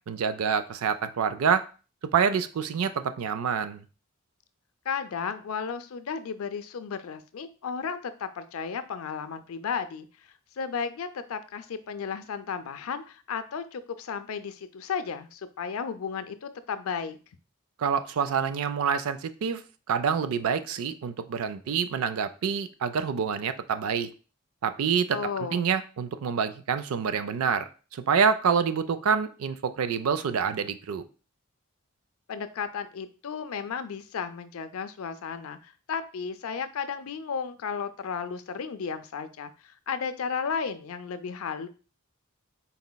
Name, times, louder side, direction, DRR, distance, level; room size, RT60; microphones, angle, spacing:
voice 1, 0.1-1.6 2.1-3.8 17.8-24.1 24.6-25.2 25.5-31.0, right 6 dB, 75° right, 11 dB, 0.4 m, -27 dB
voice 2, 4.9-10.1 10.6-17.2 25.1-25.7 32.3-41.7, left 6 dB, 80° left, 10 dB, 0.4 m, -34 dB
4.1 x 4.0 x 2.2 m, 0.35 s
head